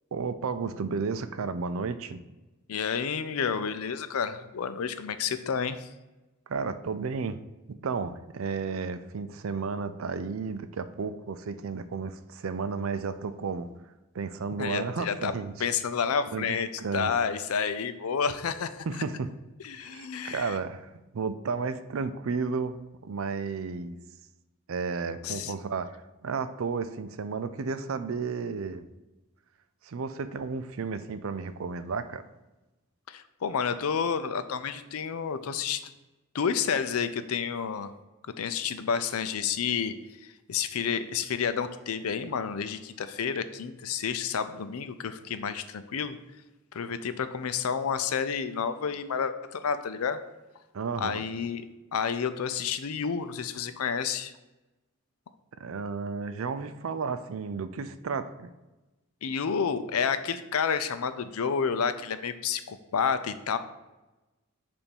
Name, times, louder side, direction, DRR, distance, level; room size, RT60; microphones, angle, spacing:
voice 1, 0.1-2.2 6.5-7.4 7.8-13.7 14.1-15.5 16.3-17.1 18.9-19.3 19.8-24.0 24.7-28.8 29.8-32.2 50.7-51.2 55.6-58.5, right 5 dB, 70° right, 11 dB, 0.4 m, -33 dB
voice 2, 2.7-5.9 14.6-15.3 15.6-18.9 19.6-20.6 25.2-25.5 33.1-35.8 36.3-37.9 38.4-39.9 40.2-46.2 46.7-50.2 51.0-51.7 51.9-54.3 59.2-63.6, left 6 dB, 90° left, 11 dB, 0.5 m, -30 dB
7.0 x 2.6 x 5.3 m, 1.1 s
head